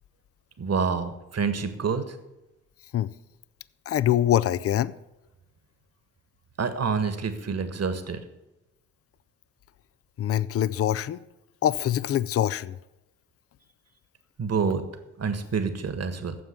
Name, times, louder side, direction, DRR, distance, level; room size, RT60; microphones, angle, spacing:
voice 1, 0.6-2.1 6.6-8.2 14.4-14.8 15.2-16.3, right 5 dB, 40° right, 1.5 m, -27 dB
voice 2, 3.9-4.9 10.2-11.2 11.6-12.7, left 11 dB, 35° left, 0.5 m, -24 dB
9.4 x 7.3 x 8.4 m
hypercardioid pair, 40°, 40 cm